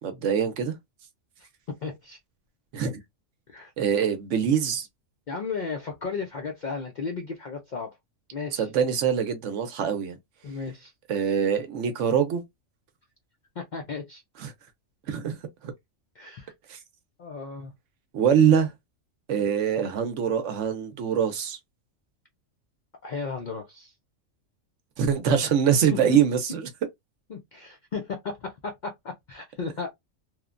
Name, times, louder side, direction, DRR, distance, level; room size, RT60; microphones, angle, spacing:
voice 1, 0.0-0.7 2.7-3.0 3.8-4.9 8.6-10.2 11.1-12.4 14.4-14.5 15.1-15.4 15.6-15.7 16.7-16.8 18.1-18.7 19.3-21.6 25.0-26.7, right 8 dB, 70° right, 0.9 m, -24 dB
voice 2, 1.4-2.2 3.5-3.7 5.3-8.0 8.3-8.7 10.4-10.9 13.6-14.2 16.1-16.5 17.2-17.7 23.0-23.9 25.9-26.2 26.5-26.6 27.3-29.9, left 4 dB, 65° left, 0.4 m, -35 dB
3.1 x 2.1 x 2.4 m
omnidirectional pair, 1.4 m